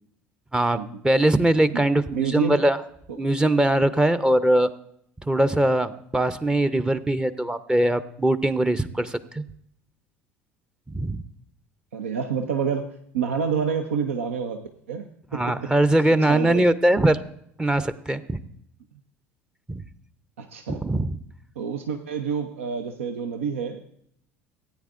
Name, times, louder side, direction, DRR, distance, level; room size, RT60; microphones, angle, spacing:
voice 1, 1.0-2.8 3.2-4.7 5.3-9.4 10.9-11.2 15.3-17.2 17.6-18.4 19.7-19.8 20.7-21.2, right 1 dB, 10° right, 13 dB, 0.6 m, -21 dB
voice 2, 2.1-2.6 11.9-14.6 14.9-15.1 15.3-15.7 16.3-16.7 20.4-20.8 21.6-23.8, right 6 dB, 80° right, 6 dB, 0.6 m, -28 dB
17.0 x 9.2 x 2.5 m, 0.70 s
figure-of-eight pair, 65°, 7 cm